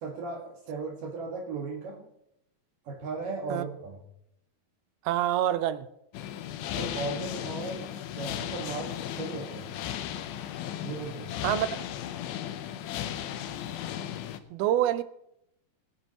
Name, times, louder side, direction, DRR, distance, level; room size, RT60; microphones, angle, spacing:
voice 1, 0.0-2.0 2.8-4.0 6.8-9.7 10.8-11.3, right 3 dB, 65° right, 3.3 m, -36 dB
voice 2, 5.1-5.9 11.4-11.8 14.5-15.0, right 12 dB, 80° right, 2.5 m, -26 dB
sound 1, 6.1-14.4, left 10 dB, 75° left, 2.5 m, -36 dB
23.5 x 10.5 x 3.0 m
omnidirectional pair, 4.5 m